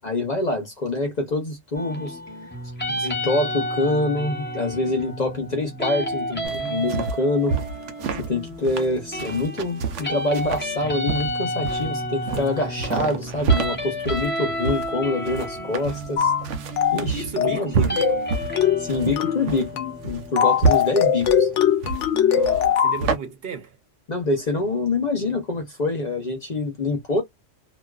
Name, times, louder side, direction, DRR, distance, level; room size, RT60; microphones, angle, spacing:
voice 1, 0.0-2.2 2.9-7.5 8.2-16.3 16.9-17.9 18.8-19.7 20.0-21.5 24.1-27.2, left 2 dB, 45° left, 0.7 m, -25 dB
sound 1, 1.7-21.7, equal, 10° left, 0.9 m, -31 dB
sound 2, 6.4-23.2, right 5 dB, 90° right, 0.9 m, -28 dB
sound 3, 16.2-16.4 16.8-17.0 17.4-17.7 18.0-18.2 18.6-18.8 19.2-19.4 19.8-20.0 20.4-23.0, left 8 dB, 85° left, 0.9 m, -20 dB
voice 2, 17.1-18.2 22.1-23.8, right 5 dB, 60° right, 0.9 m, -34 dB
2.4 x 2.3 x 2.3 m
omnidirectional pair, 1.2 m